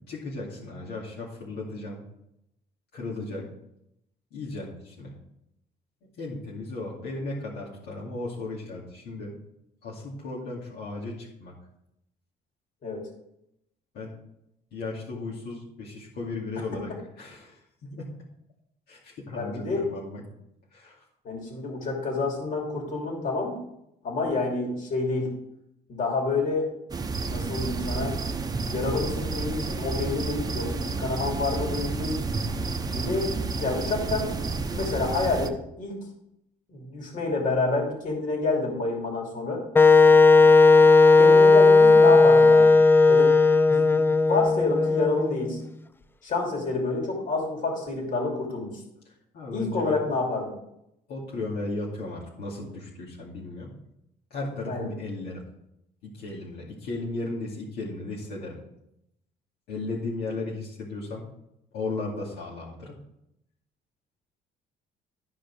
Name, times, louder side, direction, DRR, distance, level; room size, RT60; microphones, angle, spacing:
voice 1, 0.1-2.0 2.9-3.4 4.3-5.1 6.2-9.3 9.8-11.5 13.9-14.1 14.7-16.9 17.2-18.1 18.9-20.2 20.7-21.0 49.3-50.0 51.1-53.7 54.3-55.4 56.0-58.6 59.7-61.2 61.7-63.0, left 2 dB, 75° left, -5 dB, 2.5 m, -35 dB
voice 2, 19.3-19.8 21.2-23.6 24.0-25.3 25.9-26.7 27.3-28.2 28.7-32.3 32.8-33.3 33.6-34.3 34.7-35.5 35.8-36.1 36.7-39.6 41.2-42.7 43.1-43.3 43.7-45.6 46.2-48.8 49.5-50.5 54.7-54.9, left 3 dB, 50° left, 0 dB, 3.0 m, -28 dB
sound 1, 26.9-35.5, right 4 dB, 20° right, 0.8 m, -30 dB
Wind instrument woodwind instrument, 39.8-45.6, left 3 dB, 15° left, 0.4 m, -16 dB
12.5 x 5.2 x 4.8 m, 0.81 s
cardioid pair, 110°, 17 cm